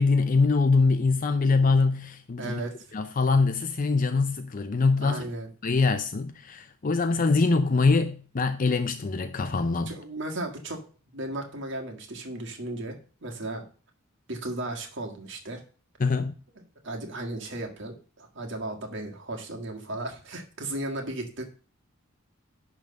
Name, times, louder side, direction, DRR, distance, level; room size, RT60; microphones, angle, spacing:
voice 1, 0.0-2.6 2.9-5.2 5.6-9.9 16.0-16.3, left 4 dB, 40° left, 0.5 m, -23 dB
voice 2, 2.4-3.0 5.0-5.5 9.9-10.8 11.1-13.7 14.3-15.6 16.6-21.4, right 1 dB, 60° right, 1.8 m, -35 dB
11.0 x 3.6 x 6.4 m
head